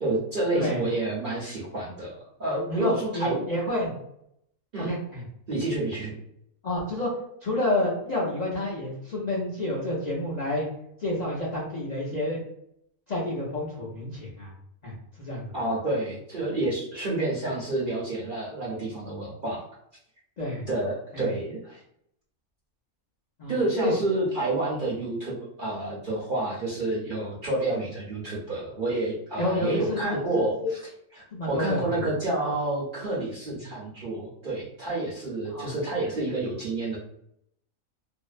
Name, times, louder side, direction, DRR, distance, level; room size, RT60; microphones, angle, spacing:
voice 1, 0.0-3.4 4.7-4.9 5.5-6.2 15.5-19.6 20.7-21.8 23.5-37.0, right 2 dB, 50° right, -6 dB, 0.7 m, -29 dB
voice 2, 2.7-3.9 4.8-5.2 6.6-7.1 7.4-10.7 11.0-12.4 13.1-14.5 14.8-15.5 20.4-20.7 21.1-21.2 23.4-23.9 29.4-30.7 31.3-32.0 35.5-35.7, left 1 dB, 55° left, -6 dB, 0.4 m, -29 dB
2.6 x 2.0 x 2.4 m, 0.74 s
omnidirectional pair, 1.5 m